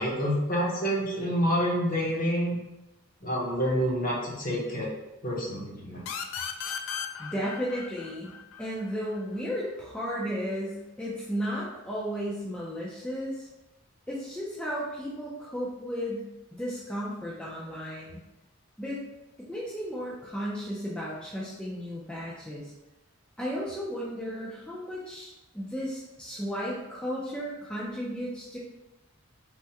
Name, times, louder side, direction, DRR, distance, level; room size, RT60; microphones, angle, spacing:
voice 1, 0.0-2.6 3.2-4.9 5.2-6.0, equal, 45° left, -4 dB, 0.8 m, -28 dB
sound 1, 6.1-9.5, left 7 dB, 75° left, 0.3 m, -37 dB
voice 2, 7.2-8.3 8.6-13.5 14.1-16.3 16.6-18.2 18.8-19.0 19.4-22.7 23.4-28.6, equal, 5° left, -6 dB, 0.4 m, -34 dB
3.4 x 2.1 x 2.8 m, 0.94 s
head